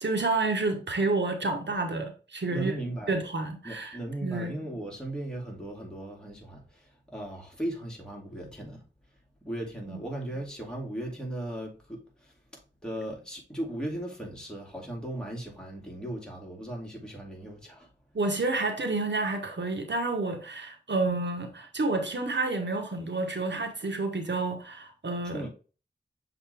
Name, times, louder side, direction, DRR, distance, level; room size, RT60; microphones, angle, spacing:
voice 1, 0.0-2.7 3.1-4.5 9.9-10.0 18.1-25.4, right 3 dB, 75° right, 1.2 m, -29 dB
voice 2, 2.5-3.2 3.6-8.8 9.4-12.3 12.8-17.9 25.2-25.5, right 1 dB, 5° left, 2.5 m, -37 dB
6.8 x 4.0 x 3.4 m
wide cardioid pair, 55°, 19 cm